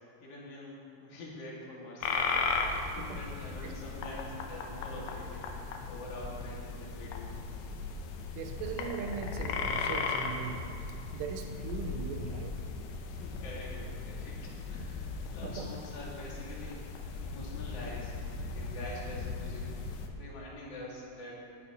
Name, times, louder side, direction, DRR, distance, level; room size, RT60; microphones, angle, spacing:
voice 1, 0.2-2.3 2.9-5.5 5.9-7.3 13.1-16.8 17.2-18.2 18.5-19.7 20.2-21.4, left 2 dB, 40° left, -5 dB, 2.9 m, -45 dB
sound 1, 2.0-20.1, left 4 dB, 80° left, 2.6 m, -37 dB
voice 2, 8.4-10.7 11.1-12.6 15.4-15.7, right 6 dB, 80° right, 4 dB, 3.0 m, -39 dB
17.5 x 10.5 x 3.2 m, 2.7 s
omnidirectional pair, 4.9 m